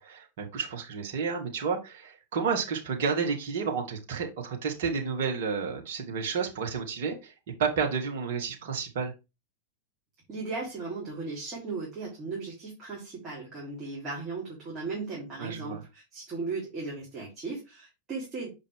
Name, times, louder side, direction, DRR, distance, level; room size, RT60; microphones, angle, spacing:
voice 1, 0.0-7.3 7.6-9.1 15.4-15.8, right 5 dB, 55° right, 3 dB, 2.0 m, -31 dB
voice 2, 10.3-18.5, right 3 dB, 25° right, -5 dB, 3.5 m, -37 dB
7.0 x 5.1 x 3.6 m, 0.26 s
figure-of-eight pair, 90°, 0 cm